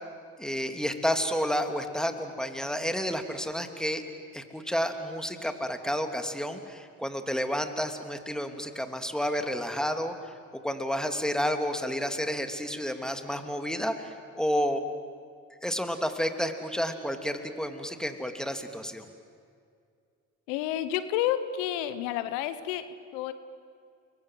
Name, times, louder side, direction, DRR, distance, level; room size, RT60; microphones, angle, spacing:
voice 1, 0.4-4.0 4.3-10.3 10.6-14.8 15.6-19.1, equal, ahead, 6 dB, 3.2 m, -30 dB
voice 2, 20.5-22.9 23.1-23.3, left 12 dB, 85° left, 13 dB, 1.1 m, -30 dB
30.0 x 23.0 x 7.8 m, 2.3 s
hypercardioid pair, 45°, 40 cm